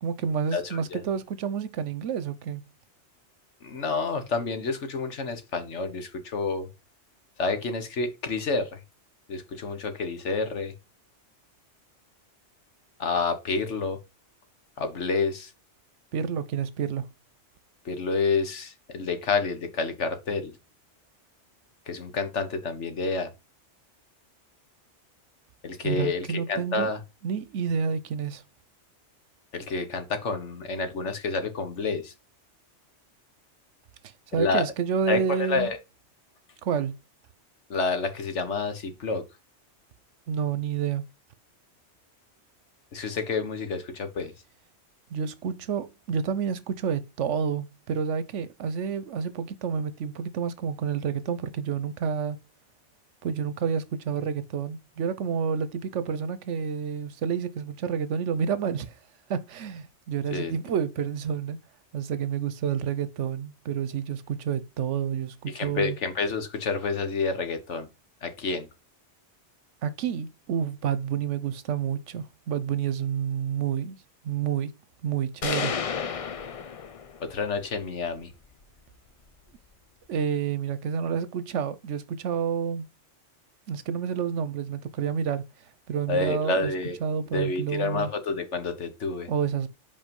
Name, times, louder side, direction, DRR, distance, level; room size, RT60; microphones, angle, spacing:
voice 1, 0.0-2.6 16.1-17.1 25.8-26.9 27.2-28.4 34.3-35.7 36.6-36.9 40.3-41.0 45.1-52.4 53.2-58.9 59.3-61.6 61.9-66.0 69.8-74.0 74.2-74.7 75.0-75.7 80.1-82.9 83.7-85.4 85.9-86.7 87.0-88.1 89.3-89.7, right 7 dB, 85° right, 1.1 m, -29 dB
voice 2, 0.5-1.0 3.6-6.7 7.4-8.8 9.3-10.7 13.0-14.0 14.8-15.5 17.8-20.5 21.9-23.3 25.6-27.0 29.5-32.1 34.3-34.6 35.1-35.8 37.7-39.2 42.9-44.3 60.3-60.6 65.5-67.9 68.2-68.7 77.2-78.3 86.1-87.0 87.3-89.3, left 4 dB, 75° left, 1.5 m, -29 dB
sound 1, 75.4-77.4, left 6 dB, 45° left, 0.4 m, -31 dB
5.5 x 4.9 x 5.2 m
omnidirectional pair, 1.2 m